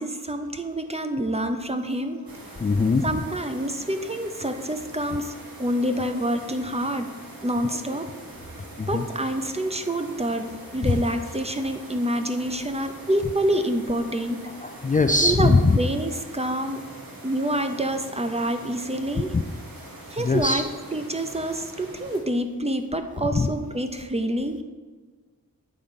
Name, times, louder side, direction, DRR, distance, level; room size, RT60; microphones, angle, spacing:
voice 1, 0.0-2.3 3.0-7.1 7.4-8.1 8.9-14.4 15.2-16.8 17.2-19.4 20.1-24.6, right 1 dB, 20° right, 7 dB, 0.6 m, -27 dB
sound 1, 2.3-22.2, right 1 dB, 85° right, 1.5 m, -43 dB
voice 2, 2.6-3.0 8.8-9.0 10.8-10.9 14.6-15.8 19.3-19.4 20.2-20.6 23.3-23.5, left 3 dB, 25° left, 5 dB, 0.4 m, -21 dB
8.7 x 3.9 x 5.3 m, 1.4 s
wide cardioid pair, 70°, 34 cm